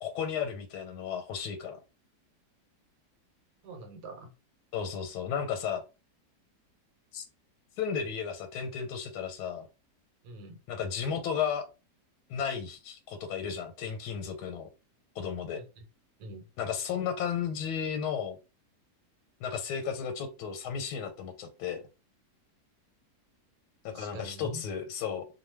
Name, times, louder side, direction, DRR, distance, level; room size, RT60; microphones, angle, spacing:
voice 1, 0.0-1.8 4.7-5.8 7.1-7.3 7.8-9.7 10.7-11.6 12.3-14.7 15.2-15.6 16.6-18.4 19.4-21.8 23.8-25.3, left 7 dB, 85° left, 6 dB, 1.2 m, -34 dB
voice 2, 3.6-4.3 10.2-10.6 15.5-15.8 16.2-16.5 23.9-24.6, right 1 dB, 80° right, 5 dB, 1.3 m, -44 dB
2.8 x 2.1 x 3.1 m, 0.30 s
omnidirectional pair, 1.7 m